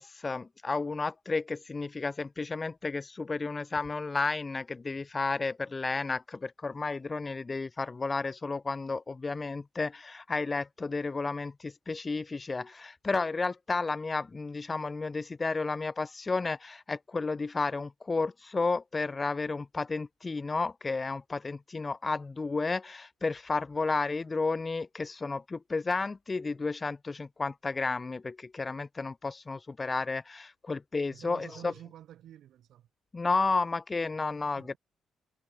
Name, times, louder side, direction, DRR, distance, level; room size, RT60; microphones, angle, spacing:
voice 1, 0.0-31.7 33.1-34.7, left 3 dB, 25° left, 0.5 m, -32 dB
voice 2, 31.1-32.9 34.5-34.8, right 11 dB, 75° right, 5.8 m, -49 dB
cardioid pair, 90°, 0 cm